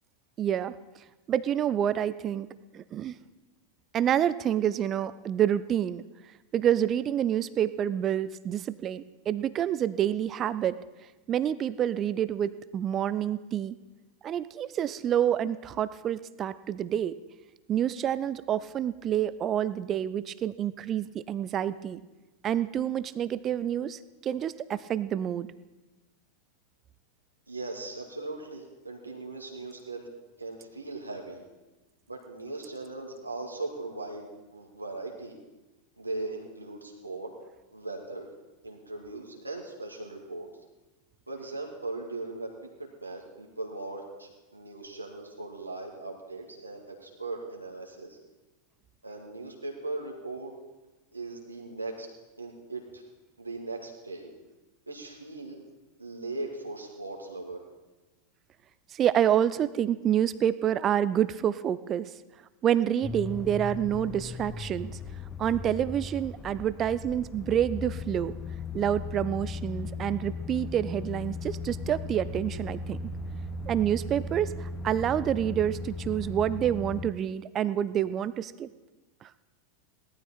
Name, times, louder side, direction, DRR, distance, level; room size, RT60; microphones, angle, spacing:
voice 1, 0.4-0.7 1.3-2.5 2.7-3.2 3.9-6.0 6.5-10.8 11.3-13.8 14.2-17.1 17.7-22.0 22.4-25.5 58.9-62.1 62.6-65.0 65.4-68.3 68.7-73.0 73.7-78.7 79.2-79.3, right 10 dB, 30° right, 16 dB, 0.5 m, -28 dB
voice 2, 27.5-30.0 30.4-31.4 32.1-35.4 36.0-37.3 37.7-38.3 38.6-40.5 41.3-42.5 42.8-48.2 49.0-50.5 51.1-52.1 52.4-53.0 53.4-54.3 54.9-55.6 56.0-57.6, right 2 dB, 85° right, 0 dB, 2.1 m, -39 dB
sound 1, 63.0-77.1, left 3 dB, 15° left, 0.6 m, -37 dB
17.5 x 12.5 x 4.3 m, 1.1 s
figure-of-eight pair, 90°, 0 cm